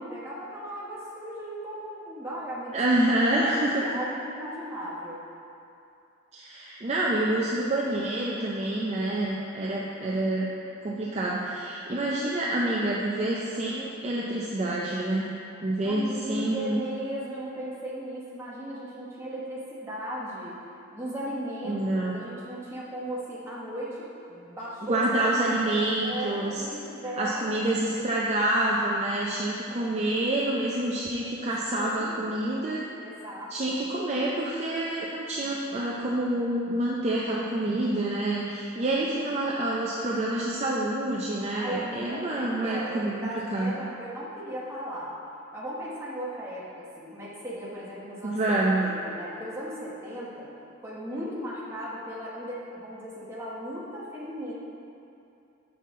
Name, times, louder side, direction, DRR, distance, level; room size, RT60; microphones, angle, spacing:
voice 1, 0.0-2.8 3.3-5.3 15.8-20.6 20.9-27.6 31.7-32.2 33.0-33.7 41.5-45.1 45.5-50.5 50.8-54.5, right 1 dB, 10° right, -7 dB, 1.2 m, -37 dB
voice 2, 2.7-3.9 6.3-10.5 10.8-15.3 15.6-16.8 21.6-22.2 24.8-26.7 27.2-32.8 33.5-43.7 48.2-48.9, right 1 dB, 30° right, -4 dB, 0.5 m, -27 dB
7.0 x 5.7 x 3.7 m, 2.6 s
head